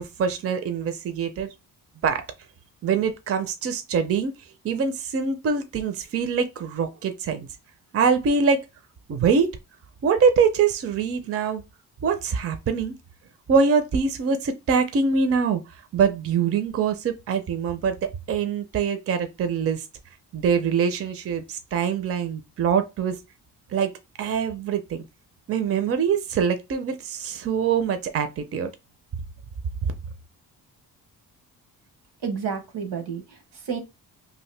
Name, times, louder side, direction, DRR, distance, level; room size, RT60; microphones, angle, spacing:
voice 1, 0.0-1.5 2.0-2.3 2.8-4.3 4.6-7.5 7.9-8.7 9.1-9.5 10.0-11.6 12.0-12.9 13.5-15.6 15.9-19.8 20.3-23.2 23.7-23.9 24.2-25.0 25.5-28.7 29.8-29.9, right 6 dB, 40° right, 0.5 m, -24 dB
voice 2, 32.2-33.8, right 6 dB, 85° right, 1.0 m, -31 dB
2.8 x 2.5 x 3.2 m
cardioid pair, 115°, 38 cm